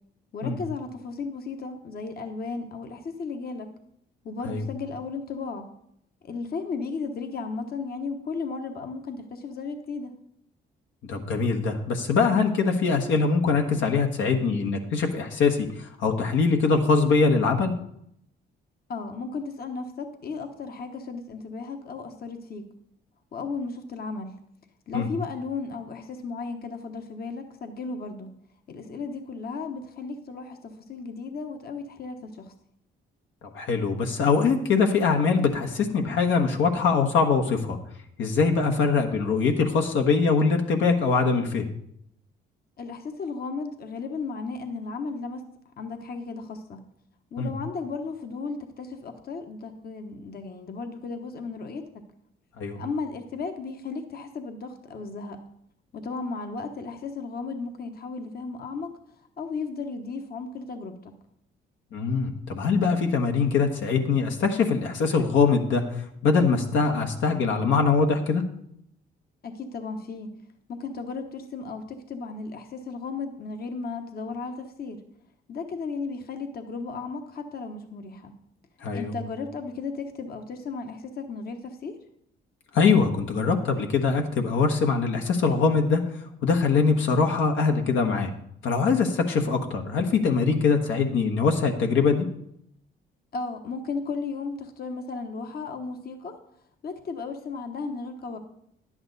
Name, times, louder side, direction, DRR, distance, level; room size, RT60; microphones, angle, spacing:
voice 1, 0.3-3.7 4.2-5.7 6.2-10.1 18.9-22.6 23.3-24.4 24.9-28.3 28.7-32.5 42.8-45.4 45.8-46.8 47.3-52.0 52.7-55.4 55.9-58.9 59.4-61.0 69.4-70.3 70.7-75.0 75.5-78.3 78.9-81.9 93.3-96.3 96.8-98.4, left 4 dB, 50° left, 5 dB, 1.1 m, -35 dB
voice 2, 11.1-17.7 24.9-25.1 33.5-37.8 38.2-41.7 47.4-47.5 52.6-52.8 61.9-65.8 66.2-68.4 78.8-79.1 82.7-86.0 86.4-88.3 88.6-92.3, left 4 dB, 75° left, 3 dB, 1.2 m, -23 dB
10.5 x 8.6 x 4.0 m, 0.72 s
cardioid pair, 90°, 20 cm